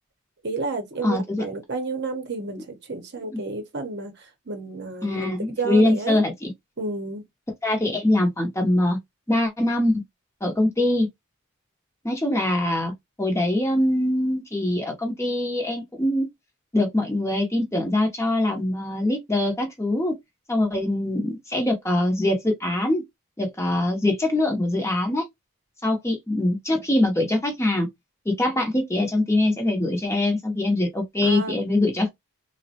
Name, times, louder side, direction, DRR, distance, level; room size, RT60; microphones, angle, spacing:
voice 1, 0.4-6.2 6.8-7.2 31.2-31.5, right 3 dB, 50° right, 0.7 m, -31 dB
voice 2, 1.0-1.4 3.3-3.4 5.0-6.5 7.6-9.0 9.3-10.0 10.4-11.1 12.0-12.9 13.2-16.3 16.7-20.2 20.5-23.0 23.4-25.3 25.8-27.9 28.3-32.1, left 1 dB, 15° left, 0.7 m, -23 dB
3.4 x 2.1 x 2.7 m
head